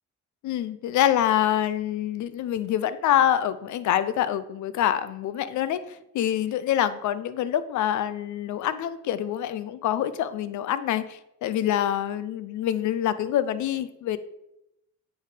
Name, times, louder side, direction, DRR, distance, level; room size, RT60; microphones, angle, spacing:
voice 1, 0.4-14.2, left 11 dB, 75° left, 14 dB, 0.6 m, -26 dB
8.6 x 3.6 x 4.9 m, 0.85 s
cardioid pair, 90°, 30 cm